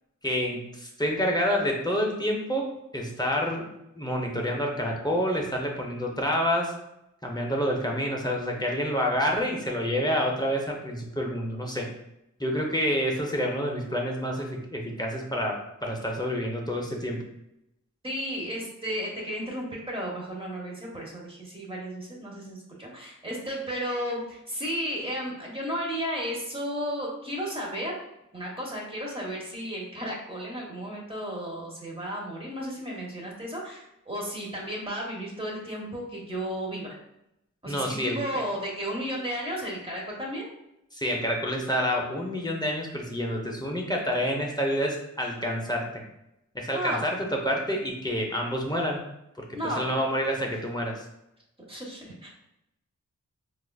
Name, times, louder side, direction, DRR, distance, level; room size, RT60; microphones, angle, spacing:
voice 1, 0.2-2.7 2.9-3.7 4.0-6.7 7.2-11.9 12.4-17.3 37.7-38.4 40.9-45.9 46.5-49.0 49.4-51.0, equal, 15° left, -1 dB, 0.6 m, -28 dB
voice 2, 18.0-28.0 28.3-36.9 37.6-40.5 46.7-47.0 49.5-50.0 51.7-52.3, equal, 20° right, -4 dB, 1.1 m, -33 dB
4.6 x 2.4 x 2.3 m, 0.85 s
wide cardioid pair, 70°, 31 cm